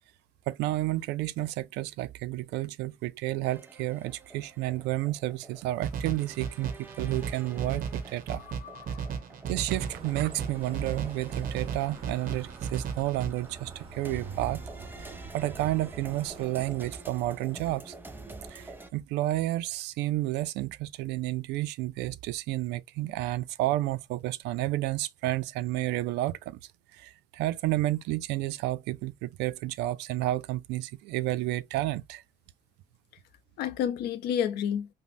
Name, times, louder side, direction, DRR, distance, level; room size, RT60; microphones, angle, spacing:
voice 1, 0.5-7.9 8.1-8.4 9.5-14.6 15.3-17.9 18.5-26.6 27.0-32.2, right 16 dB, 85° right, 0.4 m, -31 dB
sound 1, 3.5-18.9, right 2 dB, 10° right, 0.6 m, -48 dB
sound 2, 5.8-13.3, right 7 dB, 55° right, 0.8 m, -35 dB
voice 2, 8.3-9.1 33.6-34.9, left 9 dB, 70° left, 0.5 m, -31 dB
sound 3, 9.7-16.5, right 5 dB, 35° right, 1.0 m, -45 dB
5.2 x 2.0 x 2.5 m
cardioid pair, 110°, 17 cm